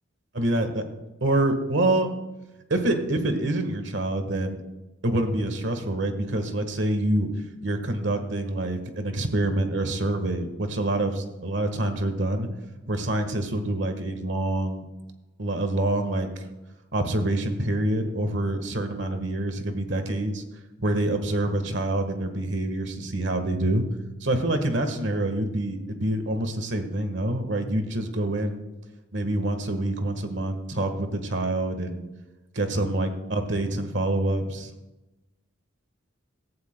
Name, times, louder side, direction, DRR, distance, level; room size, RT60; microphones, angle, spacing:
voice 1, 0.3-0.8 1.2-2.1 2.7-4.6 5.0-7.3 7.6-12.5 12.9-14.9 15.4-16.3 16.9-20.4 20.8-23.8 24.2-28.6 29.1-32.0 32.5-34.7, right 1 dB, 65° right, 7 dB, 1.4 m, -26 dB
18.0 x 14.0 x 2.2 m, 1.0 s
head